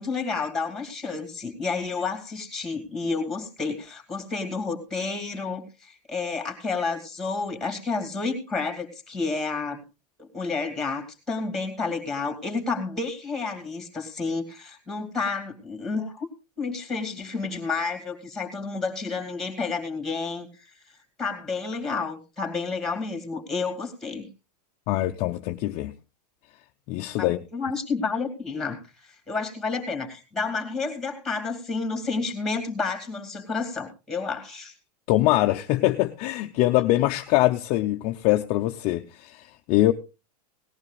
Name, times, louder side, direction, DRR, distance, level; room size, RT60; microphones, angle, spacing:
voice 1, 0.0-9.8 10.2-16.3 16.6-20.7 21.2-24.3 27.2-34.7, left 4 dB, ahead, 2.5 m, -30 dB
voice 2, 24.9-25.9 26.9-27.4 35.1-39.9, left 16 dB, 30° left, 0.6 m, -23 dB
18.5 x 14.5 x 2.4 m
supercardioid pair, 160°, 21 cm